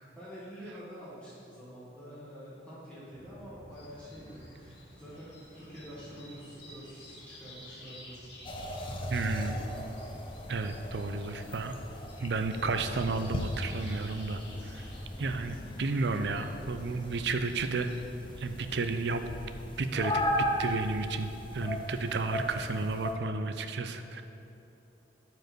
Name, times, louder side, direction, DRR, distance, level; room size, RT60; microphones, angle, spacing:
voice 1, 0.2-8.2 8.8-9.6, equal, 5° left, -10 dB, 1.9 m, -47 dB
sound 1, 3.1-21.4, right 1 dB, 50° right, 1.3 m, -56 dB
sound 2, 3.7-17.9, left 1 dB, 75° left, 1.8 m, -54 dB
sound 3, 8.4-23.1, equal, 30° left, 0.6 m, -37 dB
voice 2, 9.1-9.6 10.5-11.7 12.2-14.9 15.2-17.9 18.4-19.2 19.8-24.2, right 3 dB, 70° right, 8 dB, 0.5 m, -32 dB
7.8 x 4.6 x 6.2 m, 3.0 s
head